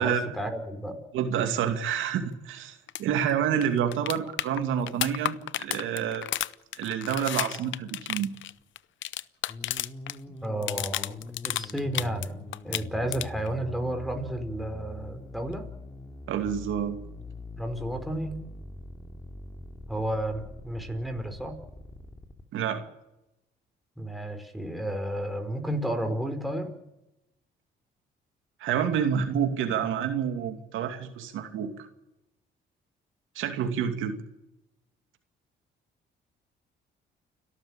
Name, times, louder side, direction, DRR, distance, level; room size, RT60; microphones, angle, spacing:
voice 1, 0.0-1.0 10.4-12.4 12.6-15.6 17.6-18.4 19.9-21.6 24.0-26.7, right 1 dB, ahead, 4 dB, 4.8 m, -32 dB
voice 2, 1.1-6.3 6.7-8.3 16.3-17.0 22.5-22.8 28.6-31.9 33.4-34.2, right 8 dB, 85° right, 6 dB, 2.5 m, -28 dB
sound 1, 2.9-3.0 3.3-3.4 3.6-10.2 10.4-12.3 12.5-13.5 15.5-15.6, left 13 dB, 70° left, 0.7 m, -32 dB
sound 2, 9.5-22.4, left 2 dB, 15° left, 3.1 m, -43 dB
29.5 x 13.0 x 8.9 m, 0.93 s
cardioid pair, 90°, 20 cm